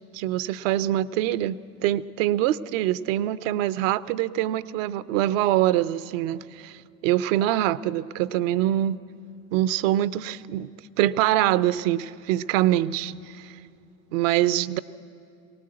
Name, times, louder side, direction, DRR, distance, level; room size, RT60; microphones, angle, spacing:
voice 1, 0.1-9.0 9.5-10.7 11.0-13.5 14.1-14.8, right 13 dB, 70° right, 0.6 m, -24 dB
18.5 x 18.5 x 7.7 m
hypercardioid pair, 70°, 41 cm